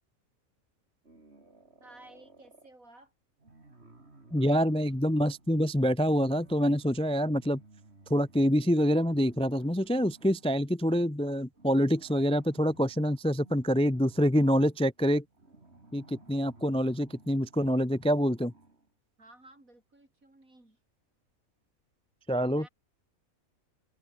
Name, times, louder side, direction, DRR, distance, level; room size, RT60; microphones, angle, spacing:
sound 1, 1.0-2.8 3.4-10.5 11.5-18.9, right 2 dB, 50° right, 4.0 m, -57 dB
voice 1, 1.8-3.1 19.2-20.8 22.4-22.7, right 1 dB, 75° right, 8.4 m, -55 dB
voice 2, 4.3-7.6 8.1-15.2 15.9-18.5 22.3-22.7, equal, 5° left, 0.7 m, -26 dB
omnidirectional pair, 1.5 m